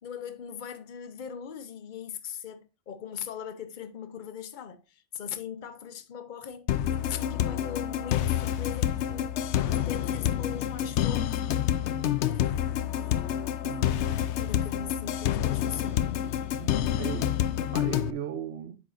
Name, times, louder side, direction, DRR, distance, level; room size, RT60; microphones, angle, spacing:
voice 1, 0.0-9.4 9.7-11.3 12.3-13.7 14.3-16.1, left 8 dB, 45° left, 0.9 m, -40 dB
sound 1, 6.7-18.1, left 11 dB, 80° left, 0.9 m, -28 dB
voice 2, 13.6-14.3 16.5-17.4 17.7-18.8, right 9 dB, 65° right, 1.0 m, -38 dB
8.4 x 7.4 x 2.5 m
omnidirectional pair, 1.2 m